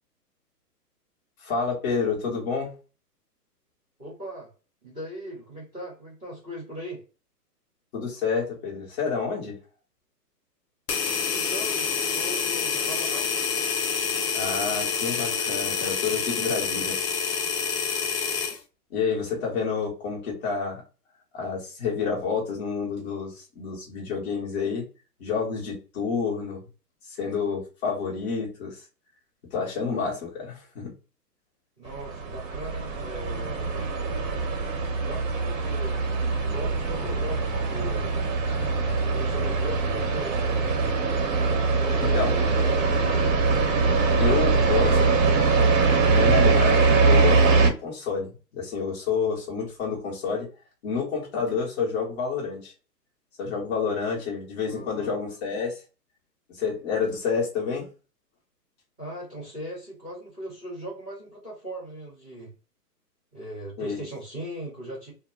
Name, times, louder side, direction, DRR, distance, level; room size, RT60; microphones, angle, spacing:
voice 1, 1.4-2.7 7.9-9.5 14.3-17.0 18.9-20.8 21.3-24.8 25.2-26.6 27.1-28.8 29.5-30.9 42.0-42.3 44.2-45.0 46.1-50.5 50.8-52.7 53.4-55.7 56.6-57.9 63.8-64.0, left 5 dB, 40° left, -3 dB, 1.0 m, -29 dB
voice 2, 4.0-4.5 4.8-7.0 11.3-13.3 31.8-33.8 34.9-36.0 36.4-38.3 39.1-40.4 41.7-43.4 44.7-45.4 46.1-46.6 54.7-55.1 59.0-62.5 63.3-65.1, equal, ahead, -23 dB, 0.4 m, -39 dB
sound 1, 10.9-18.6, left 6 dB, 75° left, 0.7 m, -27 dB
sound 2, 31.9-47.7, right 4 dB, 55° right, 0.7 m, -22 dB
2.2 x 2.1 x 3.2 m, 0.33 s
hypercardioid pair, 140°, 49 cm